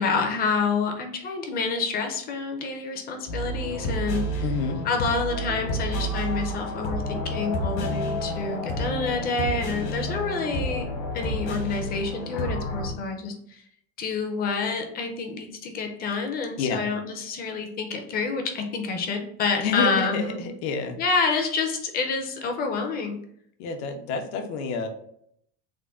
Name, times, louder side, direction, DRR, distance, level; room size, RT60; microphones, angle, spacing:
voice 1, 0.0-4.4 4.8-10.9 11.1-13.6 14.0-20.4 21.0-23.2, left 4 dB, 30° left, 4 dB, 0.4 m, -28 dB
sound 1, 3.3-12.9, equal, 65° left, 1.1 m, -30 dB
voice 2, 4.4-4.8 16.6-16.8 19.6-21.0 23.6-24.9, left 5 dB, 85° left, 5 dB, 0.7 m, -28 dB
3.6 x 2.1 x 3.4 m, 0.70 s
cardioid pair, 160°, 32 cm